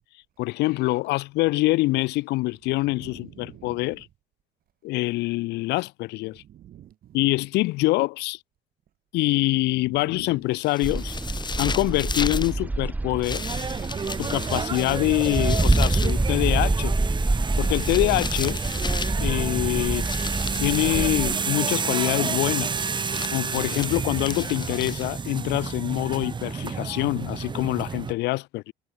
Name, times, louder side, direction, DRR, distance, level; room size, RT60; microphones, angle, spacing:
voice 1, 0.4-4.1 4.8-6.4 7.1-8.4 9.1-11.2 11.6-13.4 14.2-16.9 17.6-18.6 19.2-20.1 20.6-22.9 23.3-28.7, left 20 dB, 85° left, 1.1 m, -25 dB
voice 2, 2.7-4.0 6.3-7.3 9.9-10.4 13.3-14.3 23.0-23.8, right 11 dB, 60° right, 2.5 m, -47 dB
sound 1, 10.6-12.5 13.2-16.2 17.5-19.3 19.9-21.0 22.5-25.3, left 4 dB, 25° left, 3.4 m, -35 dB
sound 2, 10.8-21.4, right 2 dB, 10° right, 0.5 m, -26 dB
sound 3, 13.3-28.1, right 5 dB, 25° right, 1.2 m, -30 dB
cardioid pair, 110°, 17 cm